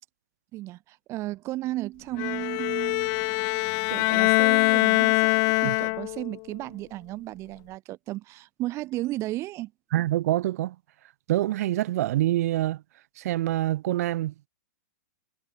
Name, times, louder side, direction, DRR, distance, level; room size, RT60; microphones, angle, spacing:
voice 1, 0.5-9.7, right 17 dB, 30° right, 2.5 m, -34 dB
Bowed string instrument, 2.2-6.3, left 36 dB, 35° left, 0.7 m, -23 dB
voice 2, 9.9-10.8 11.3-12.8 13.2-14.5, right 15 dB, 60° right, 7.0 m, -26 dB
hypercardioid pair, 150°, 9 cm